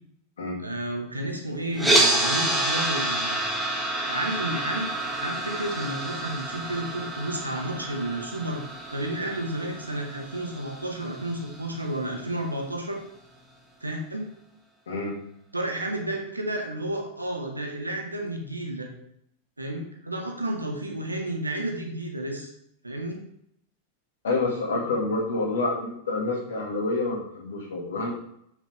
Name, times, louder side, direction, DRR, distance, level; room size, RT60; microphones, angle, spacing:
voice 1, 0.6-3.4 4.1-8.6 8.9-13.0 13.8-14.2 15.5-18.9 19.6-22.5 22.8-23.2, right 1 dB, 85° right, 2 dB, 1.5 m, -31 dB
sound 1, 1.7-11.9, right 1 dB, 5° right, 1.8 m, -28 dB
voice 2, 14.9-15.2 24.2-28.1, left 2 dB, 65° left, -1 dB, 2.3 m, -28 dB
7.3 x 6.6 x 3.5 m, 0.71 s
figure-of-eight pair, 90°, 0 cm